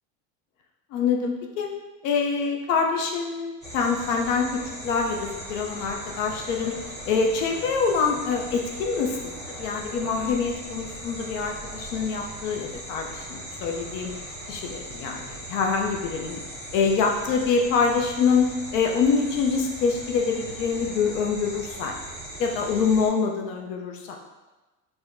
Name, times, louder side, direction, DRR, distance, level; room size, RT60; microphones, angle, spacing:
voice 1, 0.9-1.7 2.0-6.8 7.0-14.1 14.5-16.4 16.7-21.9 22.4-24.2, left 5 dB, 70° left, 2 dB, 0.5 m, -25 dB
Crickets and Planes - Night Outdoor Ambience, 3.6-23.1, right 1 dB, 15° left, 1.0 m, -39 dB
4.3 x 2.1 x 2.5 m, 1.2 s
supercardioid pair, 160°, 39 cm